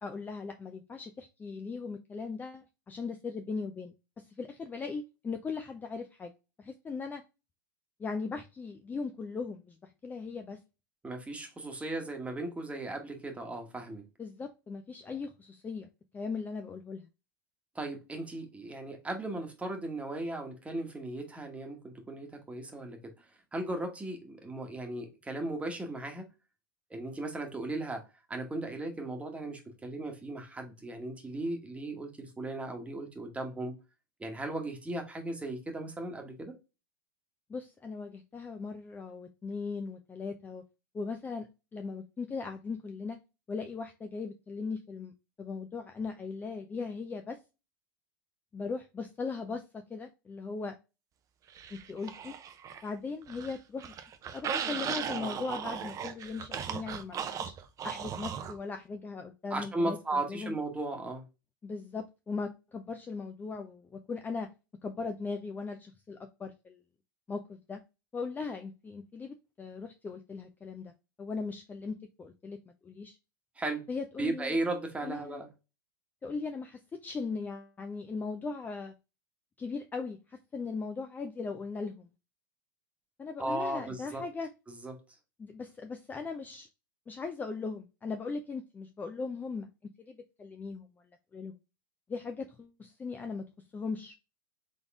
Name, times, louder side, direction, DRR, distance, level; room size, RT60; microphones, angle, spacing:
voice 1, 0.0-6.3 6.6-7.2 8.0-10.6 14.2-17.1 37.5-40.6 40.9-43.2 43.5-45.1 45.4-47.4 48.5-50.8 51.7-52.3 52.8-53.9 54.3-57.5 57.8-60.6 61.6-64.5 64.8-66.8 67.3-67.8 68.1-70.9 71.2-73.2 73.9-74.6 75.0-75.4 76.2-78.9 79.6-82.1 83.2-84.5 85.4-86.7 87.1-89.7 90.1-90.9 91.3-91.5 92.1-93.5 93.7-94.1, left 4 dB, 15° left, 0.5 m, -39 dB
voice 2, 11.0-14.0 17.7-23.2 23.5-26.3 26.9-33.8 34.2-36.5 59.5-61.2 73.6-73.9 74.2-75.5 83.4-84.2 84.7-85.0, right 2 dB, 10° right, 1.2 m, -36 dB
sound 1, 51.5-52.9 53.2-58.6, right 7 dB, 30° right, 0.7 m, -37 dB
4.0 x 3.6 x 3.5 m
hypercardioid pair, 105°, 11 cm